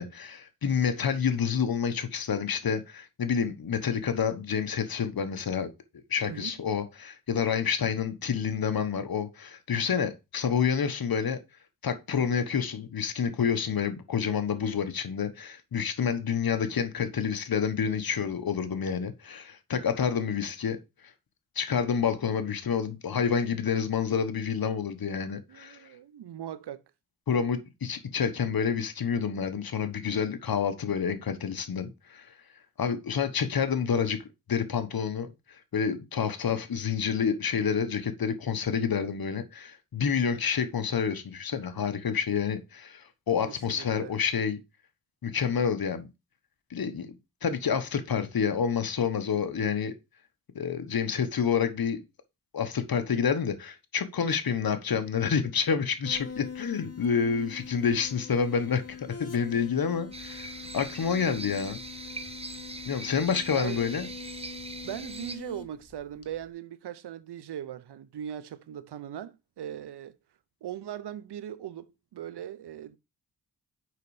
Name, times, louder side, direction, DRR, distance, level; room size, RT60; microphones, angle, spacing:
voice 1, 0.0-5.7 6.1-11.4 11.8-20.8 21.5-25.8 27.3-32.3 32.8-44.6 45.2-46.1 46.7-47.1 47.4-49.9 50.5-52.0 52.5-61.8 62.9-64.1, left 7 dB, 60° left, 1.3 m, -28 dB
voice 2, 25.5-26.8 43.7-44.1 63.5-63.8 64.8-70.2 70.6-73.0, right 10 dB, 85° right, 0.8 m, -39 dB
sound 1, 56.0-66.5, left 6 dB, 35° left, 1.2 m, -44 dB
sound 2, 60.1-65.4, right 3 dB, 15° right, 0.8 m, -41 dB
6.4 x 5.3 x 4.9 m
cardioid pair, 70°, 39 cm